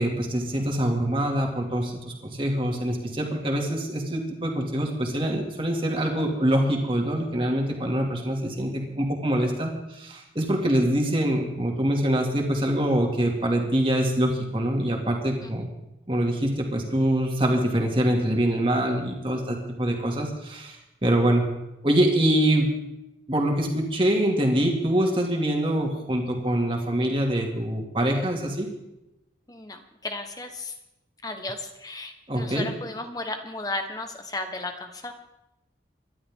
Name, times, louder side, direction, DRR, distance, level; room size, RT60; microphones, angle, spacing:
voice 1, 0.0-15.7 16.1-21.5 21.8-22.8 23.3-28.7 32.3-32.7, right 1 dB, 30° right, 1 dB, 2.4 m, -24 dB
voice 2, 29.5-30.7 31.2-35.3, left 2 dB, 20° left, 6 dB, 1.2 m, -35 dB
25.0 x 11.5 x 3.7 m, 0.93 s
head